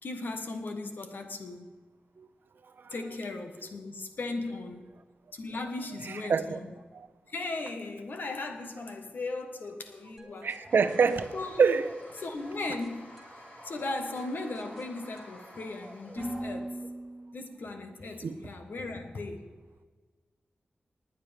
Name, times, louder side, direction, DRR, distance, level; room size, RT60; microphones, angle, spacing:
voice 1, 0.0-1.8 2.9-4.9 5.3-6.7 7.3-10.5 11.3-11.6 12.2-13.2 13.6-16.8 17.3-19.4, left 2 dB, 70° left, 5 dB, 1.4 m, -37 dB
voice 2, 6.0-6.6 6.9-7.1 10.4-11.3 11.6-11.9 18.2-18.3, right 5 dB, 80° right, 11 dB, 0.7 m, -26 dB
sound 1, 10.2-18.0, right 1 dB, ahead, 2.2 m, -45 dB
Toilet flush, 10.7-16.4, left 1 dB, 50° left, 3.6 m, -52 dB
19.5 x 9.6 x 3.6 m, 1.4 s
wide cardioid pair, 100°, 3 cm